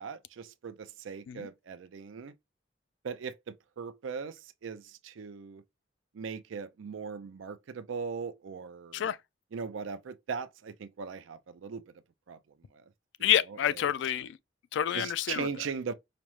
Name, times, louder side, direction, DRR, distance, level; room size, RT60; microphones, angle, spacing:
voice 1, 0.0-2.3 3.0-3.3 3.8-5.6 6.1-9.1 9.5-11.8 12.3-12.4 13.2-13.3 14.9-15.9, right 5 dB, 80° right, 0.4 m, -39 dB
voice 2, 13.2-14.4 14.7-15.5, left 10 dB, 65° left, 0.3 m, -28 dB
5.0 x 2.1 x 2.9 m
head